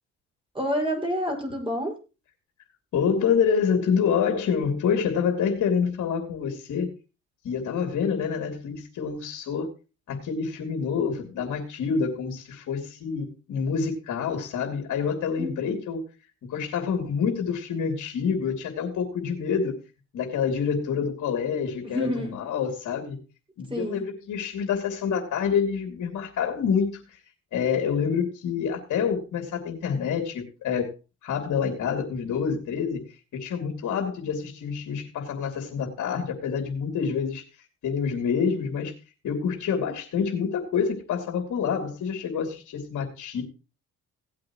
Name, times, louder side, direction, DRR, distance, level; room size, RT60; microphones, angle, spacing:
voice 1, 0.5-1.9 15.4-15.7 21.8-22.4 23.7-24.1, equal, 15° right, 2 dB, 5.9 m, -28 dB
voice 2, 2.9-6.9 7.4-9.7 10.1-16.0 16.5-19.7 20.1-23.2 23.6-27.2 27.5-30.9 31.2-33.0 33.3-37.4 37.8-38.9 39.2-43.4, left 6 dB, 70° left, 3 dB, 2.9 m, -27 dB
17.5 x 8.7 x 3.1 m, 0.31 s
cardioid pair, 90°, 30 cm